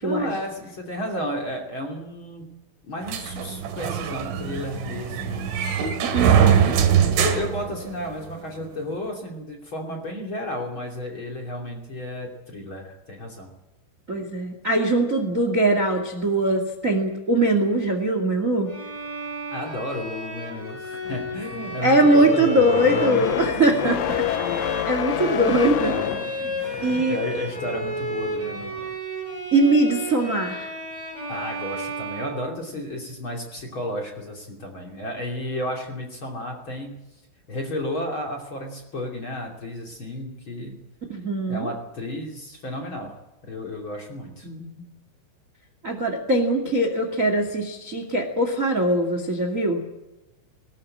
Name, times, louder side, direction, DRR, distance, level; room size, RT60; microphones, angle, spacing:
voice 1, 0.0-2.5 2.8-5.5 6.1-13.5 19.5-22.7 26.5-28.7 31.3-37.0 37.5-40.8 41.5-43.2 43.4-44.5, left 1 dB, 30° left, 2 dB, 2.8 m, -32 dB
sound 1, 3.1-8.3, right 8 dB, 80° right, 4.4 m, -22 dB
voice 2, 6.1-6.8 14.1-18.7 21.8-24.2 24.5-24.6 24.8-26.0 26.4-26.5 26.8-27.2 29.5-30.7 41.1-41.7 44.4-44.9 45.8-49.8, right 1 dB, 35° right, 5 dB, 1.2 m, -21 dB
Bowed string instrument, 18.7-33.0, right 1 dB, 10° right, 7.3 m, -33 dB
sound 2, 21.0-29.0, left 11 dB, 80° left, 3.4 m, -30 dB
20.0 x 19.0 x 8.8 m, 0.99 s
omnidirectional pair, 5.7 m